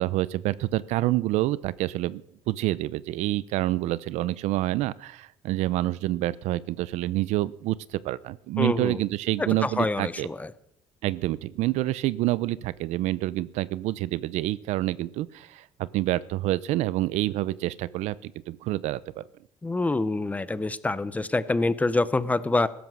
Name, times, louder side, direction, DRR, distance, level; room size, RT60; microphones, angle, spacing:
voice 1, 0.0-2.2 2.5-10.3 11.0-19.2, right 16 dB, 80° right, 19 dB, 0.6 m, -27 dB
voice 2, 8.6-9.0 9.4-10.5 19.6-22.7, left 2 dB, 15° left, 16 dB, 0.7 m, -26 dB
16.0 x 13.0 x 6.3 m, 0.74 s
cardioid pair, 130°, 11 cm